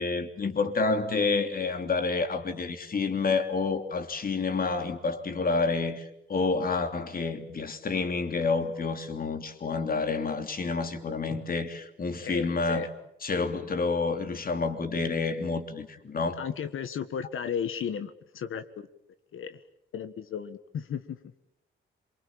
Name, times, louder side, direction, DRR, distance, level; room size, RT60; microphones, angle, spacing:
voice 1, 0.0-12.9 13.2-16.4, left 4 dB, 45° left, 3.1 m, -29 dB
voice 2, 12.2-12.9 16.4-18.6 19.3-19.6 19.9-21.2, left 7 dB, 80° left, 1.5 m, -34 dB
27.5 x 24.0 x 8.7 m
wide cardioid pair, 130°, 21 cm